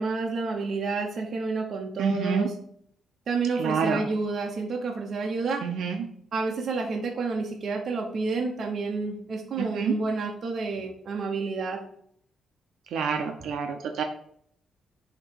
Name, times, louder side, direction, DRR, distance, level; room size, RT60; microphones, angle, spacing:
voice 1, 0.0-2.5 3.3-5.7 6.3-11.8, right 4 dB, 50° right, 1 dB, 0.8 m, -29 dB
voice 2, 2.0-2.5 3.6-4.0 5.6-6.0 9.6-9.9 12.9-14.0, right 6 dB, 80° right, 4 dB, 0.6 m, -27 dB
7.7 x 2.9 x 4.5 m, 0.67 s
cardioid pair, 115°, 0 cm